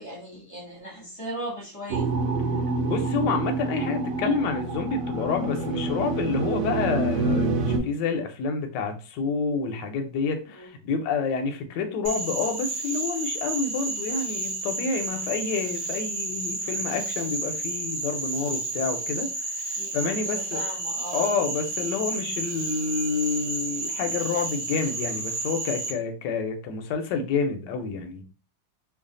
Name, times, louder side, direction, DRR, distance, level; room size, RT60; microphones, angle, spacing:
voice 1, 0.0-2.1 10.6-10.7 19.8-21.3, right 1 dB, 25° left, -4 dB, 0.8 m, -38 dB
sound 1, 1.9-7.8, right 3 dB, 70° right, 1.2 m, -27 dB
voice 2, 2.8-19.3 19.7-20.6 21.1-28.2, left 5 dB, 70° left, 5 dB, 1.2 m, -28 dB
Frog, 12.0-25.9, right 2 dB, 50° right, 1.3 m, -31 dB
3.2 x 2.4 x 3.7 m, 0.35 s
omnidirectional pair, 2.2 m